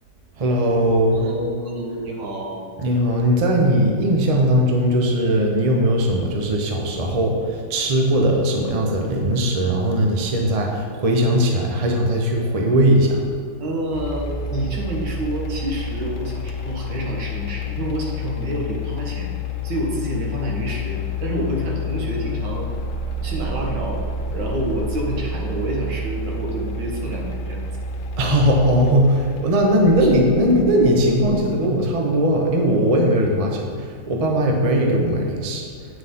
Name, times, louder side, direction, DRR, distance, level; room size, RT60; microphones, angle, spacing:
voice 1, 0.4-1.2 2.8-13.2 28.2-35.6, equal, 40° right, 1 dB, 0.5 m, -19 dB
voice 2, 1.1-2.7 13.6-19.3 19.6-22.7 23.2-24.0 24.3-27.6 30.0-30.1, right 1 dB, 70° right, -1 dB, 1.9 m, -28 dB
sound 1, 13.9-31.7, left 2 dB, 80° left, 1.3 m, -29 dB
9.1 x 6.3 x 3.7 m, 2.1 s
omnidirectional pair, 2.0 m